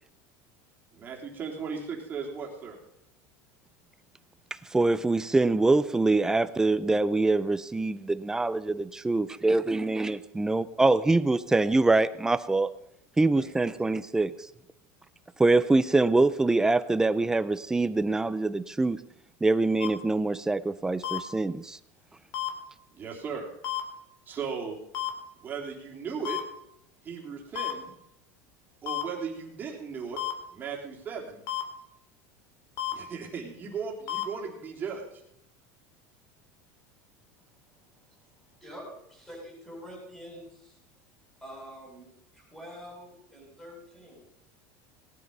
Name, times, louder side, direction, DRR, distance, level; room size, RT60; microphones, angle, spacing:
voice 1, 0.9-2.8 13.4-13.5 22.9-23.5 24.2-24.8 25.4-26.4 27.0-27.9 28.8-30.2 30.5-31.4 32.9-35.2, right 5 dB, 20° right, -1 dB, 3.5 m, -36 dB
voice 2, 4.7-12.7 13.2-14.3 15.4-19.0 19.4-21.8, right 2 dB, 5° right, 14 dB, 0.5 m, -24 dB
sound 1, 19.8-19.9 21.0-21.2 22.3-22.5 23.6-23.8 24.9-25.1 26.3-26.4 27.6-27.7 28.9-29.0 30.2-30.3 31.5-31.6 32.8-32.9 34.1-34.2, left 14 dB, 50° left, 2.8 m, -30 dB
voice 3, 38.6-40.8 41.4-44.2, equal, 10° left, -2 dB, 8.0 m, -46 dB
18.5 x 10.5 x 5.4 m, 0.76 s
supercardioid pair, 160°, 8 cm